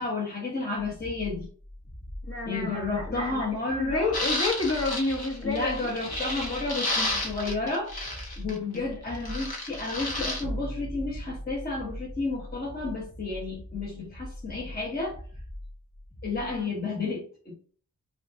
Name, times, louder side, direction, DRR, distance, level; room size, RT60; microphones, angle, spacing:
voice 1, 0.0-1.5 2.5-4.2 5.4-7.9 8.4-15.2 16.2-17.5, left 3 dB, 25° left, -3 dB, 1.1 m, -31 dB
sound 1, 0.8-16.6, left 1 dB, 10° left, 0.4 m, -43 dB
voice 2, 2.3-3.4 3.7-5.9 16.4-16.7, left 2 dB, 40° left, -1 dB, 1.6 m, -29 dB
sound 2, 4.1-8.8 9.1-10.4, left 2 dB, 85° left, 1.0 m, -32 dB
sound 3, 10.4-14.3, right 1 dB, 15° right, 1.1 m, -41 dB
5.0 x 2.5 x 3.9 m, 0.43 s
wide cardioid pair, 95°, 36 cm